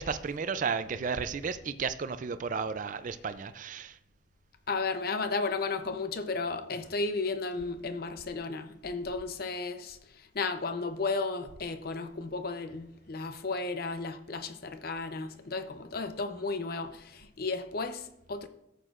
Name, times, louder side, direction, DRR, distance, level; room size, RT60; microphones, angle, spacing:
voice 1, 0.0-4.0, right 5 dB, 40° right, 0.4 m, -33 dB
voice 2, 4.7-18.5, left 3 dB, 50° left, 0.7 m, -34 dB
13.5 x 8.2 x 2.5 m
head